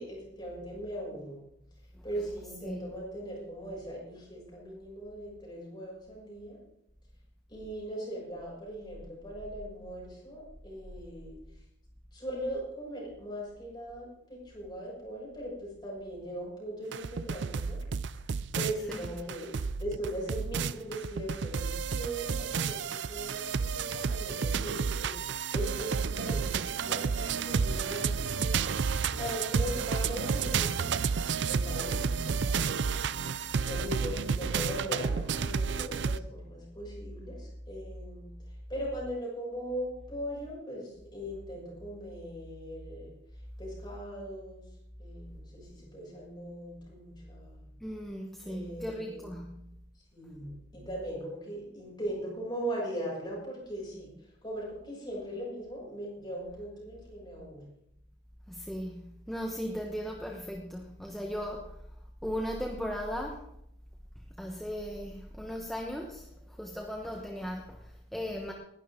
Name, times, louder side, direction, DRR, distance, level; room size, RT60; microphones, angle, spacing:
voice 1, 0.0-1.4 2.0-6.6 7.5-11.3 12.1-17.8 18.5-23.5 23.7-25.1 25.5-30.9 31.5-33.1 33.6-38.3 38.7-43.1 43.6-44.7 45.0-47.7 48.4-49.3 50.1-57.6, right 1 dB, 20° left, -4 dB, 6.6 m, -39 dB
sound 1, 16.9-36.2, right 5 dB, 60° right, 0.5 m, -31 dB
voice 2, 47.8-49.6 58.5-61.8 62.2-63.5 64.4-68.5, equal, ahead, 1 dB, 1.1 m, -37 dB
20.0 x 12.0 x 3.7 m, 0.78 s
head